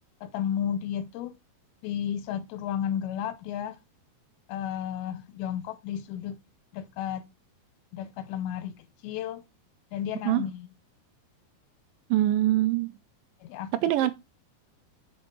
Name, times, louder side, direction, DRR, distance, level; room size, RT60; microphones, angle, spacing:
voice 1, 0.2-1.3 1.8-3.8 4.5-6.4 6.7-7.2 7.9-9.4 9.9-10.7 13.4-13.7 14.0-14.1, left 9 dB, 90° left, 2.7 m, -33 dB
voice 2, 12.1-12.9 13.8-14.1, right 14 dB, 80° right, 2.1 m, -23 dB
6.9 x 5.9 x 3.1 m
omnidirectional pair, 4.3 m